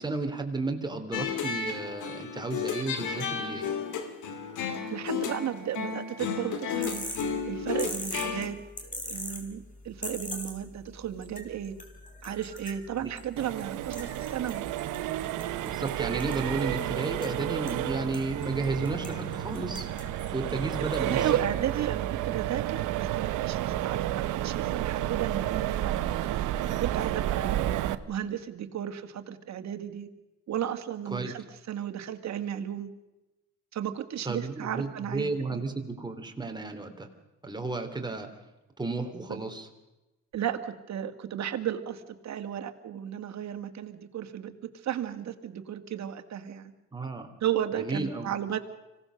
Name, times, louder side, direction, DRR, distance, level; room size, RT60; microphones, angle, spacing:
voice 1, 0.0-3.7 13.0-13.1 15.6-19.9 20.3-21.4 31.1-31.3 34.2-37.1 37.4-38.3 38.8-39.7 46.9-47.3 47.8-48.3, right 3 dB, 15° right, 4 dB, 3.1 m, -33 dB
sound 1, 1.1-8.5, left 6 dB, 80° left, 2.7 m, -33 dB
voice 2, 4.9-7.0 7.5-8.6 8.8-11.7 12.2-14.6 21.0-27.6 28.1-30.1 30.5-32.9 33.7-35.6 39.3-39.4 40.3-46.7 47.4-48.6, right 10 dB, 65° right, 7 dB, 2.0 m, -34 dB
sound 2, 6.8-21.9, left 2 dB, 25° left, 4.3 m, -44 dB
Accelerating revving vroom, 13.4-27.9, right 13 dB, 85° right, 0.9 m, -31 dB
25.5 x 17.0 x 6.4 m, 1.0 s
cardioid pair, 90°, 30 cm